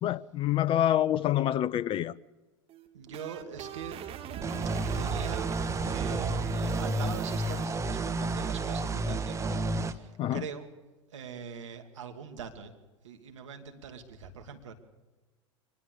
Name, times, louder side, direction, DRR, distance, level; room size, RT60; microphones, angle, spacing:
voice 1, 0.0-2.2 10.2-10.4, left 12 dB, 35° left, 0.6 m, -27 dB
sound 1, 2.7-7.7, right 10 dB, 35° right, 2.0 m, -40 dB
voice 2, 2.9-5.5 5.8-9.6 9.9-10.7 11.1-12.7 13.0-14.7, right 6 dB, 70° right, 2.6 m, -42 dB
sound 2, 4.4-9.9, right 2 dB, 20° right, 1.5 m, -31 dB
24.5 x 20.5 x 6.8 m
figure-of-eight pair, 80°, 16 cm